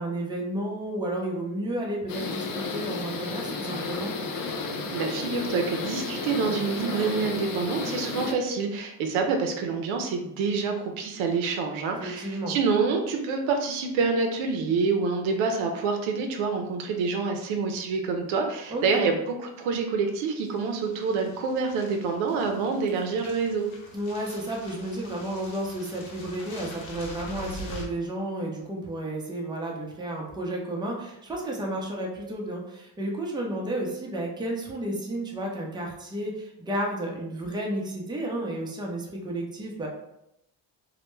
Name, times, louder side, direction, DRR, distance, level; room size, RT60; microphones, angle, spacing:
voice 1, 0.0-4.1 12.0-12.5 18.7-19.1 23.9-39.9, right 1 dB, 10° right, -1 dB, 0.6 m, -32 dB
sound 1, 2.1-8.3, left 3 dB, 45° left, 0.5 m, -32 dB
voice 2, 4.9-23.7, right 4 dB, 75° right, 3 dB, 0.6 m, -27 dB
sound 2, 20.4-27.9, left 1 dB, 80° left, 0.8 m, -44 dB
2.2 x 2.1 x 3.1 m, 0.83 s
supercardioid pair, 75°, 48 cm